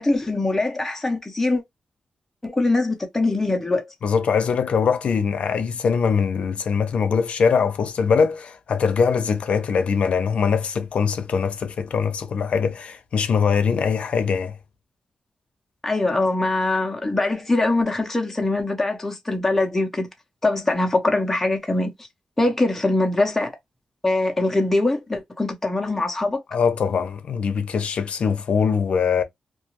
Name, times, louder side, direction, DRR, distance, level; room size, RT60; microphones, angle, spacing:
voice 1, 0.0-1.6 2.4-3.9 15.8-20.1 20.4-21.9 22.4-23.5 24.0-26.4, left 2 dB, 10° left, 0.5 m, -22 dB
voice 2, 4.0-14.6 26.5-29.2, left 6 dB, 70° left, 0.5 m, -22 dB
2.3 x 2.3 x 2.9 m
wide cardioid pair, 155°, 2 cm